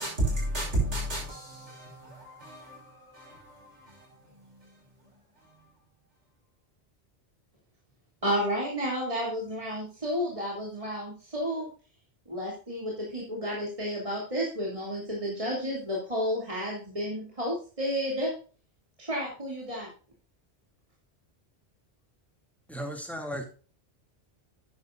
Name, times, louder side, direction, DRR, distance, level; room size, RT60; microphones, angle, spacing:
voice 1, 0.0-4.8 5.4-5.5, right 1 dB, 80° right, 5.8 m, -33 dB
voice 2, 8.2-11.7 12.3-18.3 19.0-19.9, equal, 30° right, 2.8 m, -31 dB
voice 3, 22.7-23.4, equal, ahead, 2.3 m, -35 dB
12.0 x 9.6 x 2.5 m
omnidirectional pair, 1.2 m